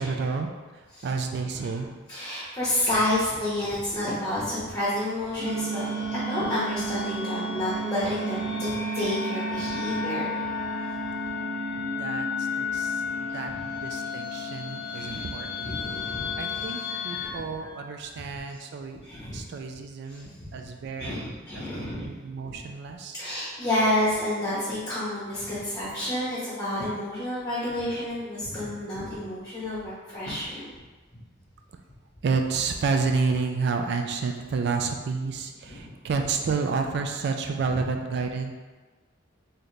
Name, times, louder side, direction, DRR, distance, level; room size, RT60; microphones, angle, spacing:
voice 1, 0.0-1.9 12.0-15.8 16.4-19.0 19.3-21.2 21.8-23.2 32.2-38.5, right 4 dB, 55° right, 4 dB, 0.3 m, -30 dB
voice 2, 1.5-10.4 11.7-11.8 13.0-13.1 14.9-15.2 15.6-18.2 18.6-18.7 19.0-19.4 20.1-20.5 21.0-22.1 23.2-30.7 35.6-35.9 37.7-37.8, left 1 dB, 20° left, -11 dB, 1.1 m, -30 dB
sound 1, 5.4-17.3, left 1 dB, 35° right, 1.1 m, -31 dB
3.9 x 2.8 x 3.2 m, 1.3 s
head